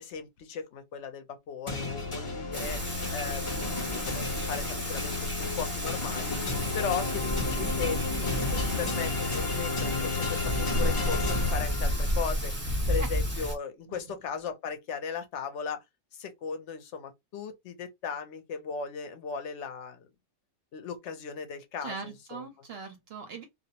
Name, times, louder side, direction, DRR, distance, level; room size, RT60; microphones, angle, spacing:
voice 1, 0.0-2.8 3.1-3.6 4.1-6.4 6.7-10.4 10.7-12.5 12.9-15.8 16.1-20.1 20.7-22.4, left 6 dB, 60° left, 0.8 m, -37 dB
sound 1, 1.7-12.3, left 4 dB, 35° left, 0.5 m, -32 dB
Thunder / Rain, 2.5-13.5, equal, 10° right, 0.6 m, -32 dB
voice 2, 21.8-23.4, right 4 dB, 60° right, 0.6 m, -40 dB
2.5 x 2.0 x 2.7 m
omnidirectional pair, 1.6 m